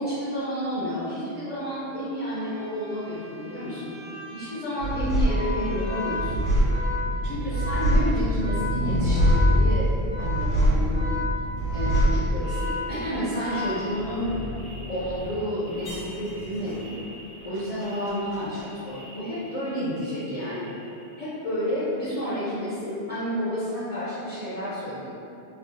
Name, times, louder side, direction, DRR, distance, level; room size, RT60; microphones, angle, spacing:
voice 1, 0.0-4.0 4.3-6.5 7.2-9.9 10.2-11.0 11.7-14.4 14.9-17.0 17.4-20.7 21.2-25.1, equal, 40° left, -12 dB, 0.6 m, -30 dB
Bowed string instrument, 2.2-6.9, right 1 dB, 10° right, 0.6 m, -47 dB
sound 1, 4.8-19.7 20.0-20.8, equal, 70° left, 1.2 m, -26 dB
Organ, 5.2-14.3, left 3 dB, 60° right, 0.8 m, -34 dB
3.3 x 2.1 x 2.5 m, 2.7 s
omnidirectional pair, 1.2 m